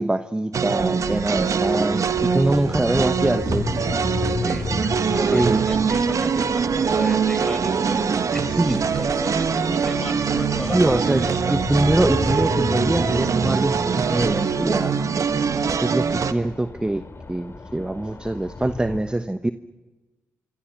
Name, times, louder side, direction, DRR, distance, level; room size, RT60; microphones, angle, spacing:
voice 1, 0.0-3.7 5.1-5.6 8.5-8.8 10.7-15.0 15.8-19.5, right 1 dB, 15° right, 11 dB, 1.1 m, -24 dB
sound 1, 0.5-16.3, right 6 dB, 55° right, 1.4 m, -23 dB
sound 2, 1.0-19.0, left 3 dB, 40° left, 4.0 m, -33 dB
voice 2, 5.1-11.6, left 1 dB, 5° left, 6 dB, 7.7 m, -34 dB
26.0 x 25.5 x 6.0 m, 1.2 s
hypercardioid pair, 40°, 6 cm